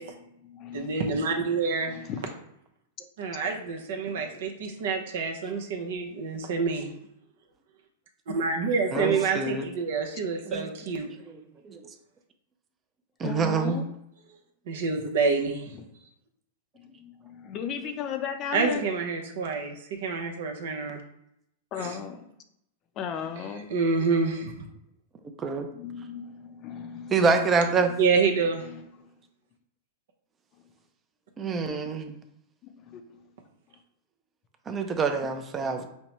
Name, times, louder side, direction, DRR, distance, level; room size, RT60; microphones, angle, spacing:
voice 1, 0.0-1.5 1.9-2.3 4.2-4.4 8.9-9.3 13.2-13.9 15.7-15.9 16.7-18.9 21.7-22.3 23.0-23.7 25.7-27.3 27.8-29.1 32.6-33.3 33.7-33.8 35.6-35.9, left 7 dB, 35° left, 6 dB, 0.5 m, -37 dB
voice 2, 0.7-2.0 3.2-6.9 8.3-11.1 14.7-15.7 18.5-21.0 21.8-21.9 23.7-24.6 28.0-28.6, right 4 dB, 70° right, 3 dB, 0.7 m, -27 dB
voice 3, 8.9-9.6 10.5-10.6 11.3-11.4 11.6-11.8 13.2-13.8 25.4-25.7 27.1-27.9 31.4-32.2 34.7-35.9, right 4 dB, 25° right, 6 dB, 0.5 m, -26 dB
5.3 x 2.1 x 3.0 m, 0.79 s
hypercardioid pair, 125°, 0 cm